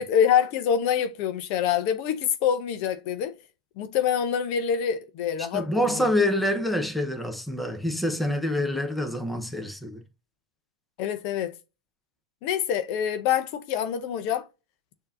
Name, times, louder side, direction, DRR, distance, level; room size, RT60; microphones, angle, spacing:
voice 1, 0.0-3.3 3.8-6.1 11.0-11.5 12.4-14.4, left 8 dB, 50° left, 0.7 m, -26 dB
voice 2, 5.5-10.0, left 1 dB, ahead, 0.9 m, -26 dB
6.6 x 2.8 x 2.6 m
hypercardioid pair, 115°, 3 cm